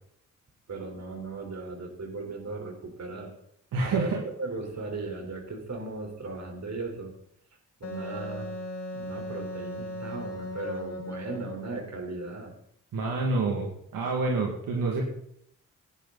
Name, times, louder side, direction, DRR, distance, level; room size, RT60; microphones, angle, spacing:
voice 1, 0.7-3.3 3.9-4.1 4.4-7.1 7.8-8.5 8.9-12.5, right 3 dB, 55° right, 3 dB, 4.3 m, -37 dB
voice 2, 3.7-4.2 12.9-15.0, right 3 dB, 80° right, 0 dB, 2.3 m, -28 dB
Wind instrument woodwind instrument, 7.8-11.9, left 2 dB, 50° left, 3.8 m, -37 dB
17.0 x 9.9 x 4.1 m, 0.72 s
supercardioid pair, 55°, 33 cm